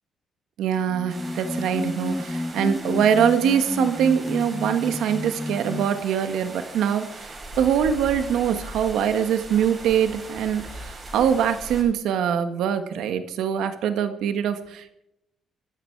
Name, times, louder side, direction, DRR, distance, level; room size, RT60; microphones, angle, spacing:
voice 1, 0.6-15.0, right 8 dB, 80° right, 9 dB, 1.7 m, -23 dB
sound 1, 0.9-6.0, left 1 dB, 10° left, 0.5 m, -31 dB
sound 2, 1.1-11.8, right 2 dB, 35° right, 6.4 m, -40 dB
23.0 x 12.5 x 4.8 m, 0.82 s
cardioid pair, 90°, 0 cm